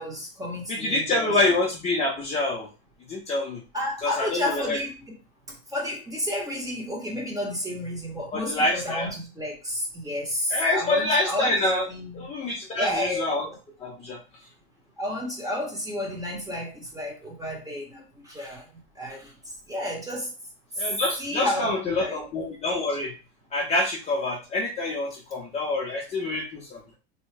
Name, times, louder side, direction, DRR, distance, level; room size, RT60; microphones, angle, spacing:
voice 1, 0.0-1.4 3.7-4.9 5.5-11.5 11.9-12.3 12.7-13.6 15.0-18.7 18.9-20.3 20.8-20.9 21.2-22.2, left 1 dB, 10° right, -2 dB, 1.1 m, -31 dB
voice 2, 0.7-2.7 3.1-3.6 4.0-4.8 8.3-9.1 10.5-11.9 12.1-13.4 13.8-14.2 20.8-23.1 23.5-27.0, left 2 dB, 20° left, -3 dB, 0.6 m, -26 dB
3.1 x 2.3 x 3.3 m, 0.32 s
supercardioid pair, 130°, 35 cm